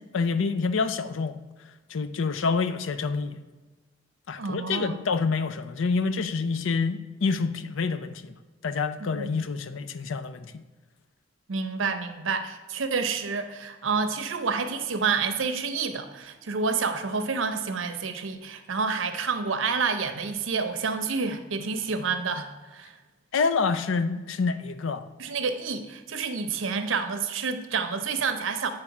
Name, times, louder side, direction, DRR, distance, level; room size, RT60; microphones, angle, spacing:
voice 1, 0.0-1.4 1.9-3.4 4.3-8.3 8.6-10.5 23.3-25.0, left 4 dB, 85° left, 11 dB, 0.5 m, -27 dB
voice 2, 4.4-5.0 9.0-9.4 11.5-22.9 25.2-28.7, right 5 dB, 85° right, 8 dB, 0.7 m, -29 dB
8.2 x 3.3 x 5.9 m, 1.2 s
head